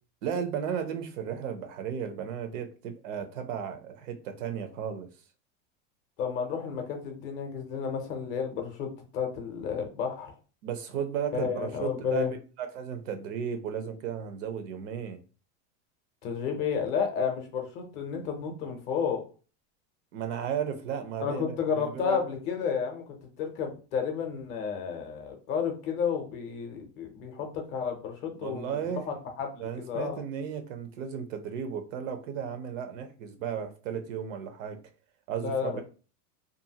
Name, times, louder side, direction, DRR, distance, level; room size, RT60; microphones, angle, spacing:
voice 1, 0.2-5.1 10.6-15.2 20.1-22.2 28.4-29.1 29.6-34.8 35.3-35.8, right 8 dB, 85° right, 0.7 m, -34 dB
voice 2, 6.2-10.3 11.3-12.3 16.2-19.2 21.2-30.2 35.4-35.8, left 6 dB, 30° left, 0.5 m, -32 dB
2.6 x 2.5 x 2.7 m
supercardioid pair, 170°, 37 cm